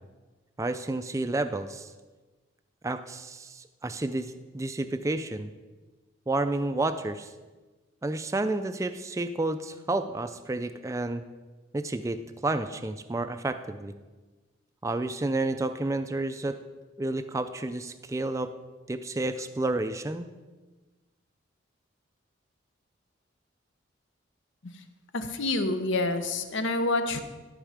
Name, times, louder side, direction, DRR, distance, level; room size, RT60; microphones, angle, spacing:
voice 1, 0.6-1.9 2.8-5.5 6.3-7.3 8.0-11.2 11.7-13.9 14.8-16.6 17.0-18.5 18.9-20.3, right 2 dB, 15° right, 9 dB, 0.3 m, -30 dB
voice 2, 25.1-27.2, left 2 dB, 75° left, 9 dB, 0.8 m, -28 dB
12.0 x 5.5 x 5.0 m, 1.3 s
head